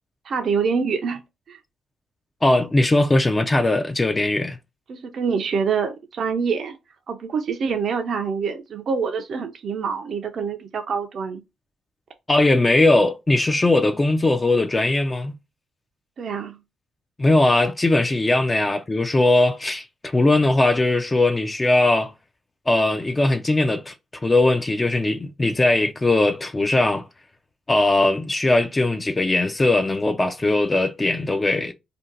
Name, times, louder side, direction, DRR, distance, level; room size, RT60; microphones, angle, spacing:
voice 1, 0.2-1.2 1.5-1.6 4.9-6.8 7.1-11.4 16.2-16.6, right 5 dB, 55° right, 0.4 m, -25 dB
voice 2, 2.4-4.6 12.3-15.3 17.2-22.1 22.7-23.9 24.2-27.1 27.7-31.7, left 2 dB, 20° left, 0.3 m, -19 dB
2.6 x 2.2 x 3.8 m
cardioid pair, 90°, 0 cm